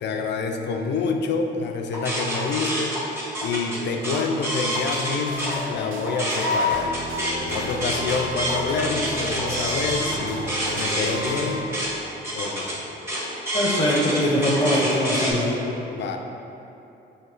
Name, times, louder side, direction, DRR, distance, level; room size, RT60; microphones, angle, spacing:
voice 1, 0.0-2.9 3.4-6.9 7.4-10.5 10.8-11.7 12.3-12.9 15.9-16.2, left 4 dB, 60° left, 4 dB, 0.5 m, -27 dB
sound 1, 1.9-5.6 5.9-15.3, equal, 10° right, 1.3 m, -27 dB
sound 2, 4.7-11.6, equal, 80° right, 0.7 m, -33 dB
voice 2, 13.5-15.6, equal, 20° left, -4 dB, 0.7 m, -22 dB
5.6 x 2.9 x 3.3 m, 2.8 s
cardioid pair, 90°, 20 cm